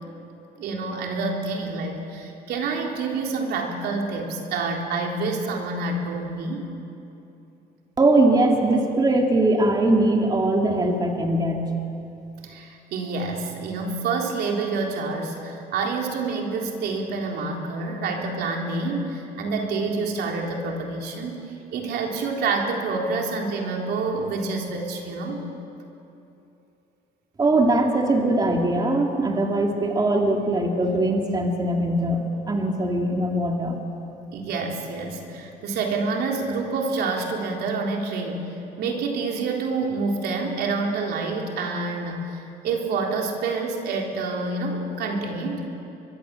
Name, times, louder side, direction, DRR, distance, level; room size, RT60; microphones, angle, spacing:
voice 1, 0.6-6.7 12.4-25.4 34.3-38.4 38.8-45.7, right 3 dB, 75° right, 1 dB, 3.8 m, -27 dB
voice 2, 8.0-11.7 27.4-33.8, right 2 dB, 25° right, 1 dB, 2.7 m, -21 dB
24.0 x 22.0 x 7.7 m, 2.8 s
cardioid pair, 110°, 17 cm